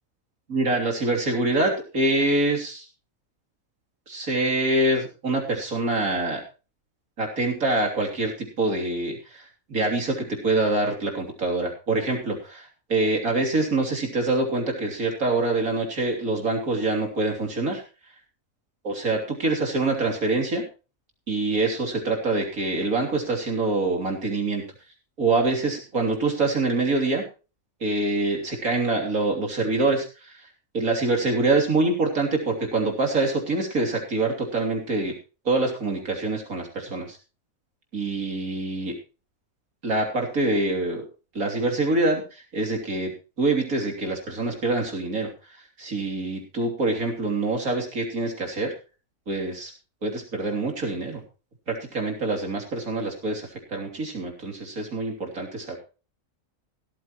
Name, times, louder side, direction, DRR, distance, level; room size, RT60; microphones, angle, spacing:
voice 1, 0.5-2.8 4.1-6.4 7.2-17.8 18.8-20.6 21.3-24.6 25.2-27.2 27.8-30.3 30.7-35.1 35.5-37.2 37.9-38.9 39.8-41.0 41.4-43.1 43.4-45.3 45.8-48.7 49.3-49.7 50.0-51.2 51.7-55.8, right 2 dB, 90° right, 1 dB, 3.6 m, -25 dB
16.5 x 13.5 x 3.1 m, 0.33 s
omnidirectional pair, 1.4 m